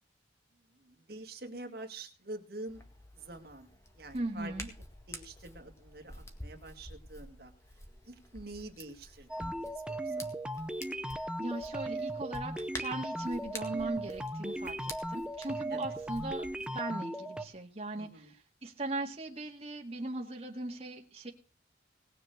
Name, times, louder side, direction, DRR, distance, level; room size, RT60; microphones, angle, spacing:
voice 1, 0.8-2.8 3.2-3.7 4.0-4.5 5.1-7.5 8.1-10.3 15.7-15.9 18.0-18.3, right 2 dB, 55° right, 5 dB, 1.9 m, -46 dB
Hands, 2.7-16.7, left 1 dB, 15° left, 1.9 m, -49 dB
voice 2, 4.1-4.7 11.0-16.5 16.7-21.3, right 2 dB, 35° right, 0 dB, 1.9 m, -39 dB
sound 1, 9.3-17.4, right 1 dB, 5° right, 0.8 m, -37 dB
19.0 x 6.9 x 6.4 m, 0.36 s
head